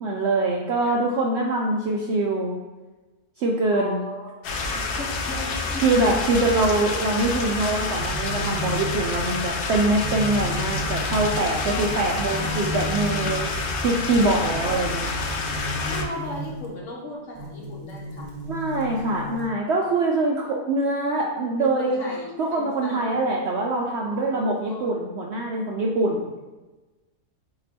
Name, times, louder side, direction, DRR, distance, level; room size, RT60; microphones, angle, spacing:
voice 1, 0.0-2.6 3.4-4.0 5.8-13.5 13.8-15.1 18.5-22.1 22.4-26.3, right 2 dB, 70° right, -1 dB, 0.6 m, -24 dB
voice 2, 0.8-1.2 3.7-4.3 4.6-5.9 6.3-6.4 11.7-12.7 14.5-15.1 15.9-18.3 21.6-23.2 24.0-24.9, left 1 dB, 55° left, -2 dB, 1.3 m, -37 dB
sound 1, 4.4-16.0, left 3 dB, 80° left, 0.5 m, -28 dB
sound 2, 7.9-16.8 17.3-19.5, equal, 35° right, 0.7 m, -34 dB
4.1 x 2.9 x 4.1 m, 1.2 s
omnidirectional pair, 1.6 m